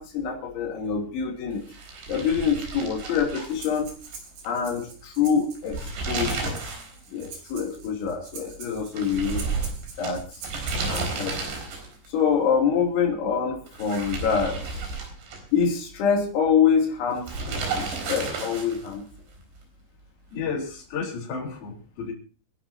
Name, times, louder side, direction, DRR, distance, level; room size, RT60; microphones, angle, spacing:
voice 1, 0.0-1.6 2.1-3.9 4.5-6.6 7.1-9.5 10.0-10.4 10.9-11.4 12.1-14.8 15.5-19.0, left 6 dB, 90° left, 0 dB, 5.4 m, -25 dB
sound 1, 1.7-4.2 4.5-4.6 5.6-7.0 7.3-7.4 9.0-12.1 13.7-15.7 17.2-18.9, right 4 dB, 75° right, 6.3 m, -32 dB
Breathing, 3.5-11.3, right 5 dB, 60° right, 5.0 m, -44 dB
voice 2, 20.3-22.1, left 5 dB, 55° left, -1 dB, 5.7 m, -32 dB
28.5 x 11.0 x 2.8 m, 0.38 s
omnidirectional pair, 5.2 m